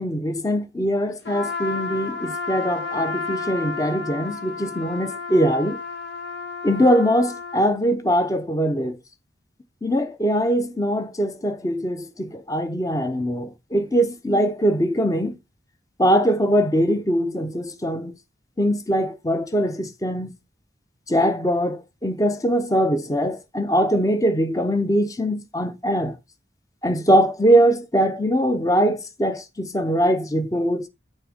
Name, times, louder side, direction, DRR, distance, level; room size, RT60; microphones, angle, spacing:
voice 1, 0.0-5.8 6.6-9.0 9.8-15.4 16.0-18.1 18.6-20.3 21.1-26.2 26.8-30.9, equal, 20° left, 0.7 m, -22 dB
Trumpet, 1.2-7.7, left 4 dB, 85° left, 1.4 m, -32 dB
6.6 x 4.2 x 5.0 m
head